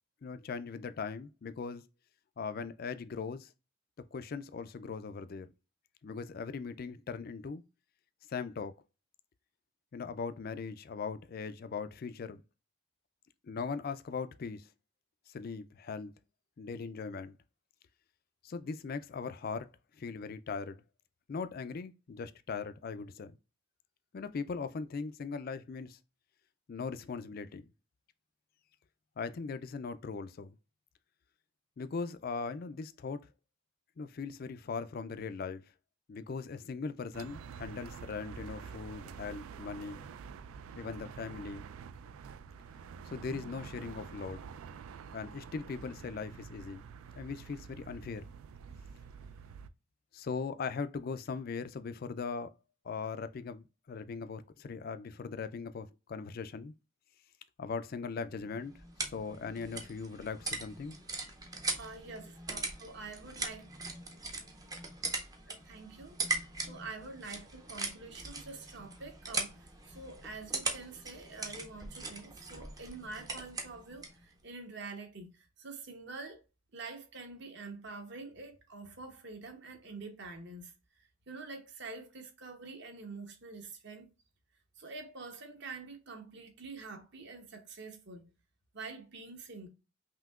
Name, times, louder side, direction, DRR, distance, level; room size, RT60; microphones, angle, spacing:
voice 1, 0.2-1.8 2.4-3.5 4.1-5.5 6.0-7.6 8.3-8.7 9.9-12.4 13.4-14.7 15.3-16.1 16.6-17.4 18.4-19.7 20.0-20.8 21.3-23.3 24.1-26.0 26.7-27.6 29.2-30.6 31.8-33.3 34.0-35.6 36.1-40.0 40.8-41.7 43.0-44.5 45.1-46.8 47.2-48.3 50.1-52.5 52.8-56.7 57.6-58.7 59.0-61.0, left 5 dB, 45° left, 0.3 m, -39 dB
sound 1, 37.1-49.7, right 6 dB, 75° right, 0.3 m, -48 dB
sound 2, 58.4-74.2, right 3 dB, 15° right, 0.5 m, -40 dB
voice 2, 61.8-62.2 62.5-63.6 65.5-76.4 76.7-84.1 84.8-88.3 88.7-89.7, right 3 dB, 50° right, 1.0 m, -46 dB
5.6 x 2.7 x 2.4 m
head